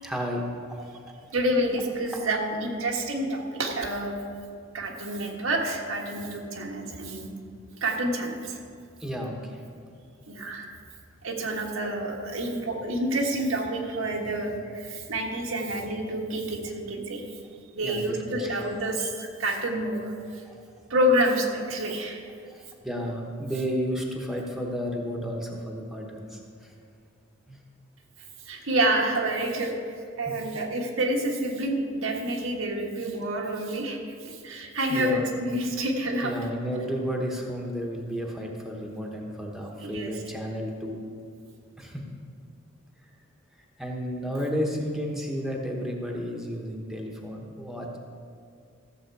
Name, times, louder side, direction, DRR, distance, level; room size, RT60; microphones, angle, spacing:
voice 1, 0.0-0.9 9.0-9.4 17.8-18.6 20.5-20.6 22.5-26.4 27.5-27.6 28.6-28.7 34.9-35.3 36.2-41.0 41.8-42.0 43.8-48.0, equal, ahead, 0 dB, 1.1 m, -32 dB
voice 2, 1.3-4.1 4.7-7.3 7.8-8.6 10.3-10.7 11.2-17.2 17.7-20.1 20.9-22.3 28.5-29.7 30.2-34.0 34.2-36.3 39.8-40.2, right 1 dB, 85° right, 0 dB, 1.5 m, -28 dB
14.0 x 7.3 x 4.7 m, 2.3 s
head